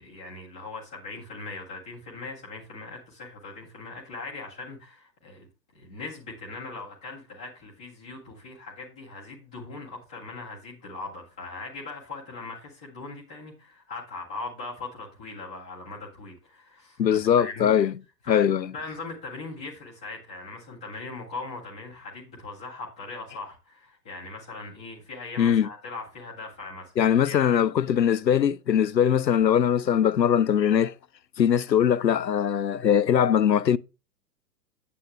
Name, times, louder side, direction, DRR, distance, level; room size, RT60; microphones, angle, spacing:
voice 1, 0.0-5.5 5.7-17.7 18.2-18.4 18.7-26.9 27.2-27.5, left 3 dB, 5° left, 0.4 m, -40 dB
voice 2, 17.0-17.9 18.3-18.7 25.4-25.7 27.0-30.9 31.4-33.8, left 9 dB, 85° left, 0.6 m, -21 dB
8.5 x 7.5 x 3.1 m
figure-of-eight pair, 110°, 50 cm